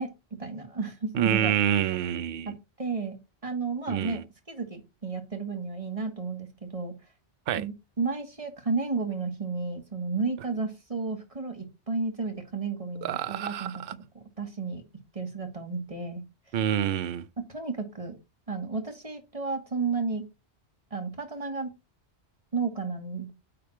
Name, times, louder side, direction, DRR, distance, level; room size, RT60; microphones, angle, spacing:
voice 1, 0.0-1.5 2.4-6.9 7.5-13.7 14.1-14.8 15.1-16.2 17.4-18.2 18.5-20.2 20.9-21.7 22.5-23.3, right 4 dB, 30° right, 1.5 m, -32 dB
voice 2, 1.1-2.5 3.9-4.2 7.5-7.7 13.0-13.9 16.5-17.3, right 9 dB, 60° right, 0.7 m, -27 dB
9.0 x 3.4 x 4.4 m
omnidirectional pair, 1.1 m